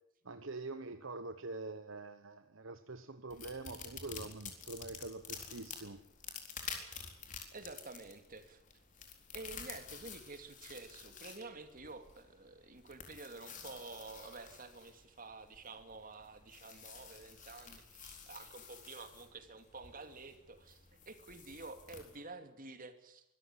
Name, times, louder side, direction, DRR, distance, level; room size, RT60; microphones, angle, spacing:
voice 1, 0.2-6.0, right 3 dB, 65° right, 9 dB, 1.2 m, -45 dB
sound 1, 3.3-22.2, left 6 dB, 40° left, 4.1 m, -50 dB
voice 2, 7.3-8.6 9.3-23.2, right 3 dB, 40° right, 7 dB, 2.8 m, -50 dB
24.5 x 14.0 x 9.7 m, 0.83 s
head